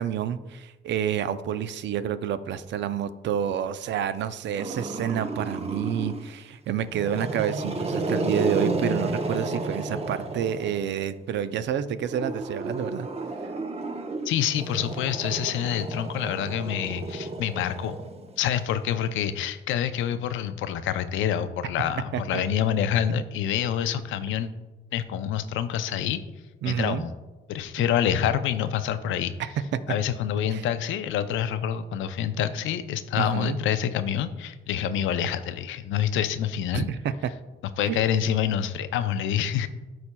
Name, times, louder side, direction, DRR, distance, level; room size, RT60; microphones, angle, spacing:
voice 1, 0.0-13.1 13.4-13.5 22.1-22.4 26.6-27.0 29.4-29.5 30.5-30.7 33.2-33.6 36.7-37.3 37.9-38.0, right 9 dB, 65° right, 13 dB, 0.4 m, -29 dB
Growling, 4.6-6.3 6.9-11.0 12.0-18.5, right 2 dB, 30° right, 0.7 m, -32 dB
voice 2, 14.2-18.0 18.4-24.5 24.9-26.2 26.6-27.1 27.5-29.3 29.9-36.9 37.8-39.7, left 9 dB, 80° left, 11 dB, 0.5 m, -27 dB
12.5 x 4.2 x 2.2 m, 1.2 s
cardioid pair, 90°, 20 cm